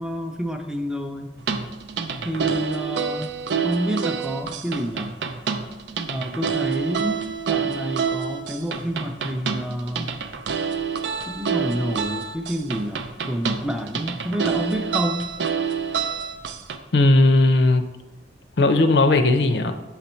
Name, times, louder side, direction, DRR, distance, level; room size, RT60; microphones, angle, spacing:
voice 1, 0.0-1.3 2.2-3.3 3.6-5.1 6.1-10.1 11.3-15.2, equal, 5° right, 5 dB, 0.5 m, -28 dB
sound 1, 1.4-16.8, right 6 dB, 80° right, 0.5 m, -27 dB
voice 2, 16.9-17.9 18.6-19.7, left 2 dB, 70° left, 8 dB, 0.6 m, -17 dB
7.5 x 4.1 x 4.3 m, 1.1 s
head